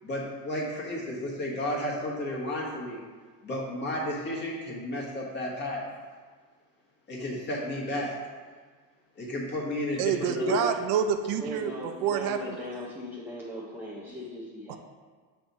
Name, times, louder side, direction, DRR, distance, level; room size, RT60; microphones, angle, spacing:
voice 1, 0.0-3.0 3.4-5.8 7.1-8.1 9.2-10.6, left 1 dB, 25° left, -4 dB, 1.4 m, -32 dB
voice 2, 10.0-12.6 14.7-14.8, right 8 dB, 90° right, 7 dB, 0.7 m, -28 dB
voice 3, 11.4-14.8, equal, 5° right, -5 dB, 0.6 m, -38 dB
7.5 x 3.4 x 4.1 m, 1.5 s
cardioid pair, 150°, 41 cm